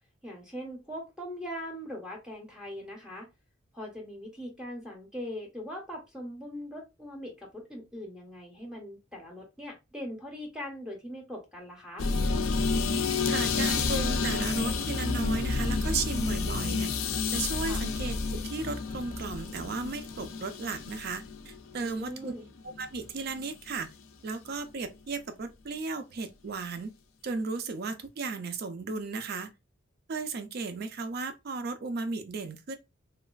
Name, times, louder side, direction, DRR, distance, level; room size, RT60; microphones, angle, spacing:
voice 1, 0.2-3.3 3.7-12.1 17.7-17.8 21.8-22.5, equal, 5° right, 0.6 m, -41 dB
sound 1, 12.0-23.1 23.4-23.7, left 4 dB, 85° left, 0.4 m, -30 dB
voice 2, 13.3-16.9 17.3-22.3 22.8-23.9 24.2-26.9 27.2-29.5 30.1-32.8, right 4 dB, 50° right, 0.4 m, -35 dB
3.1 x 2.3 x 2.2 m
head